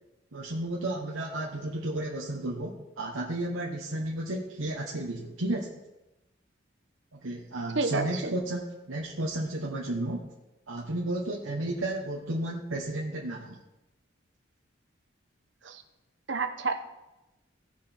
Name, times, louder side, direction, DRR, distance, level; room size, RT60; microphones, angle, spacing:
voice 1, 0.3-5.7 7.1-10.3 10.7-13.6, right 1 dB, 85° right, -1 dB, 1.2 m, -33 dB
voice 2, 7.7-8.3 15.6-15.8 16.3-16.7, right 3 dB, 65° right, 7 dB, 1.0 m, -29 dB
16.0 x 6.0 x 4.5 m, 0.99 s
head